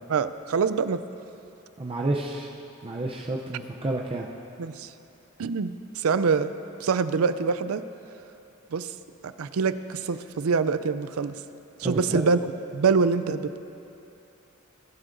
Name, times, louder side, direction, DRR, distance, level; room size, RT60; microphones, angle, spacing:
voice 1, 0.1-1.0 4.6-4.9 5.4-6.5 6.8-7.8 8.7-8.9 9.2-11.4 11.8-12.4 12.7-13.6, right 5 dB, 85° right, 13 dB, 0.4 m, -25 dB
voice 2, 1.8-2.5 2.8-4.3 11.8-12.2, right 2 dB, 25° right, -1 dB, 0.6 m, -30 dB
19.0 x 12.0 x 2.6 m, 2.9 s
head